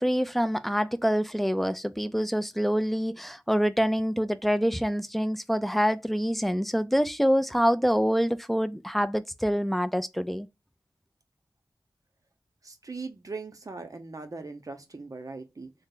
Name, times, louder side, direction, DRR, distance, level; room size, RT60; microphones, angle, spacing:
voice 1, 0.0-10.5, equal, ahead, 0.3 m, -26 dB
voice 2, 12.6-15.7, right 3 dB, 50° right, 0.7 m, -40 dB
3.2 x 2.0 x 3.7 m
wide cardioid pair, 70°, 8 cm